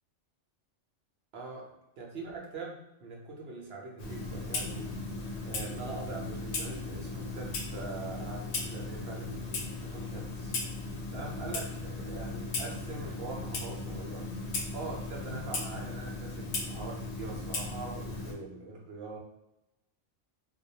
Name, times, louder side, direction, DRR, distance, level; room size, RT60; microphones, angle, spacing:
voice 1, 1.3-4.9 5.4-10.5 11.1-14.3 14.7-19.2, right 3 dB, 65° right, -1 dB, 0.8 m, -43 dB
Clock, 4.0-18.3, left 3 dB, 70° left, 0.8 m, -37 dB
2.3 x 2.1 x 2.7 m, 0.90 s
omnidirectional pair, 1.2 m